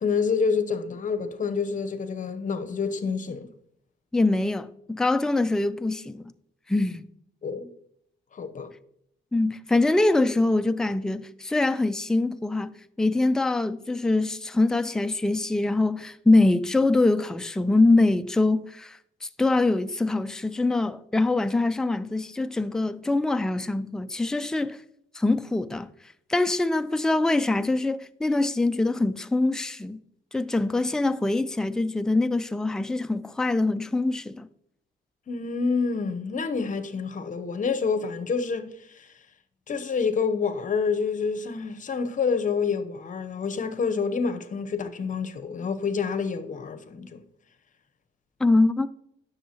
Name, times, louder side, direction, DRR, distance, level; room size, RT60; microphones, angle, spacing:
voice 1, 0.0-3.5 7.4-7.7 8.3-8.7 35.3-38.7 39.0-39.1 39.7-47.2, left 5 dB, 40° left, 0.9 m, -28 dB
voice 2, 4.1-6.3 6.7-7.0 9.3-24.8 25.1-25.9 26.3-30.0 30.3-34.5 48.4-48.9, left 2 dB, 5° left, 0.4 m, -24 dB
10.0 x 6.4 x 2.9 m
cardioid pair, 90°, 20 cm